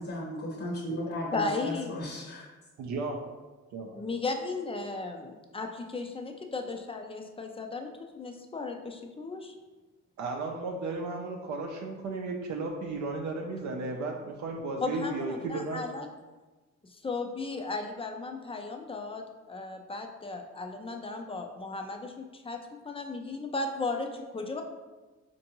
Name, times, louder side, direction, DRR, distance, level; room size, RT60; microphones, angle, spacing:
voice 1, 0.0-2.5, left 1 dB, 50° left, -3 dB, 0.9 m, -35 dB
voice 2, 1.3-1.9 4.0-9.5 14.8-16.1 16.9-22.6 22.8-24.6, left 3 dB, 20° left, 4 dB, 0.4 m, -35 dB
voice 3, 2.8-3.2 3.7-3.9 10.2-15.8, right 3 dB, 70° right, 1 dB, 0.5 m, -34 dB
4.3 x 2.6 x 2.9 m, 1.2 s
cardioid pair, 90°, 30 cm